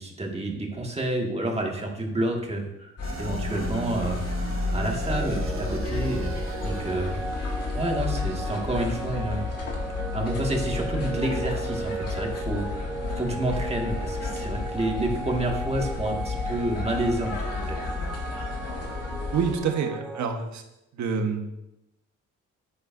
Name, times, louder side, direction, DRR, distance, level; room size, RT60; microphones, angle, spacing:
voice 1, 0.0-2.9 3.2-6.4 6.6-7.2 7.8-9.5 10.1-17.3 17.7-17.9, right 1 dB, 20° right, 0 dB, 1.8 m, -29 dB
sound 1, 3.0-19.6, left 4 dB, 55° left, 2.1 m, -32 dB
sound 2, 3.0-11.5, right 5 dB, 45° right, 0.8 m, -40 dB
sound 3, 5.0-20.3, right 3 dB, 5° right, 0.9 m, -36 dB
voice 2, 19.3-20.6 20.9-21.5, right 6 dB, 70° right, 5 dB, 1.3 m, -27 dB
9.7 x 8.6 x 2.6 m, 0.88 s
cardioid pair, 90°, 30 cm